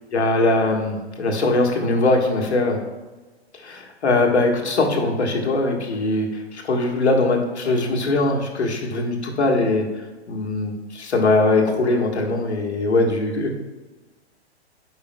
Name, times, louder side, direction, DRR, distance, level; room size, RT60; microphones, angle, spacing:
voice 1, 0.1-2.8 3.6-9.9 10.3-13.5, left 2 dB, 75° left, 2 dB, 1.5 m, -21 dB
11.0 x 5.5 x 2.2 m, 1.2 s
figure-of-eight pair, 125°, 33 cm